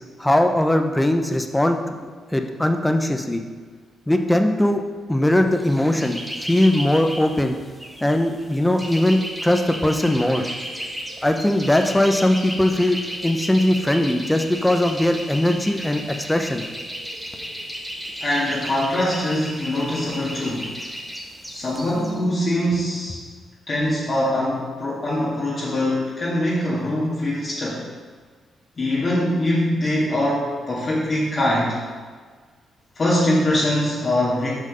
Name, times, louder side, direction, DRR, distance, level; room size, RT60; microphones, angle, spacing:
voice 1, 0.2-3.4 4.1-4.8 5.1-7.5 8.0-10.4 11.2-16.0 16.3-16.6, left 1 dB, 10° left, 5 dB, 0.9 m, -20 dB
sound 1, 5.5-22.2, equal, 5° right, 1.3 m, -34 dB
voice 2, 18.2-20.7 21.5-23.2 23.7-27.8 28.8-31.8 33.0-34.5, left 1 dB, 45° left, -8 dB, 1.9 m, -23 dB
6.3 x 5.6 x 5.3 m, 1.5 s
hypercardioid pair, 40°, 0 cm